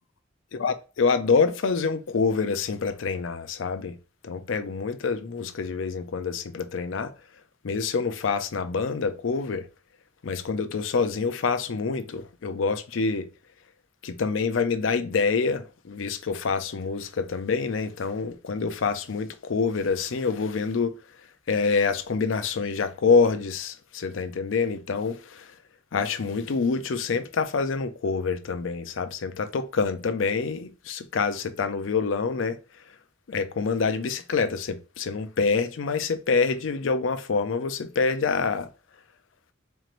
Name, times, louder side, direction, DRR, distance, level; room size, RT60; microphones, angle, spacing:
voice 1, 0.6-4.0 4.2-7.1 7.6-9.7 10.2-13.3 14.0-20.9 21.5-25.5 25.9-32.6 33.3-38.7, left 4 dB, 85° left, 0.5 m, -26 dB
4.4 x 3.0 x 2.5 m
head